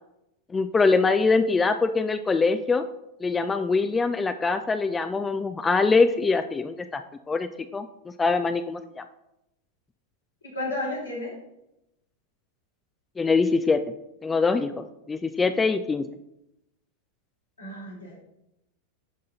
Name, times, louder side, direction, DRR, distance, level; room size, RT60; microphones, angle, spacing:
voice 1, 0.5-2.8 3.2-7.9 8.2-9.0 13.2-13.8 14.2-16.1, left 4 dB, 15° left, 10 dB, 0.3 m, -23 dB
voice 2, 10.5-11.3 17.6-18.2, left 2 dB, 80° left, -5 dB, 3.0 m, -32 dB
11.0 x 3.8 x 4.1 m, 0.87 s
figure-of-eight pair, 90°, 0 cm